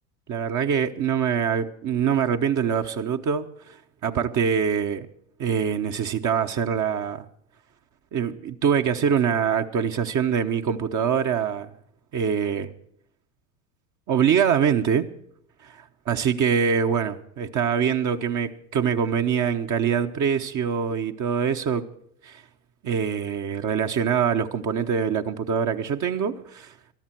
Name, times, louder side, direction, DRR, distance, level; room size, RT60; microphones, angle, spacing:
voice 1, 0.3-3.8 4.0-5.1 5.4-7.2 8.1-11.7 12.1-12.7 14.1-15.0 15.6-21.9 22.2-22.4 22.8-26.7, right 7 dB, 40° right, 5 dB, 1.1 m, -24 dB
19.5 x 13.0 x 4.6 m, 0.66 s
hypercardioid pair, 85°, 43 cm